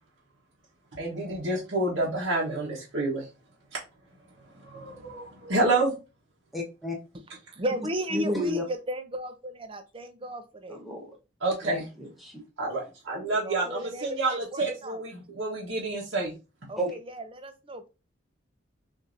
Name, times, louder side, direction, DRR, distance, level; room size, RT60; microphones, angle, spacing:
voice 1, 0.9-3.3 3.7-5.9 7.3-7.4 11.4-11.9 12.6-16.3 16.6-16.7, right 2 dB, 85° right, 1.3 m, -29 dB
voice 2, 6.5-7.0 8.1-8.6 10.7-11.0 11.7-11.8 12.2-12.4 16.8-16.9, equal, ahead, 1.2 m, -30 dB
voice 3, 7.5-10.8 13.4-15.0 16.7-17.9, equal, 30° right, 0.6 m, -35 dB
6.3 x 2.8 x 2.6 m
head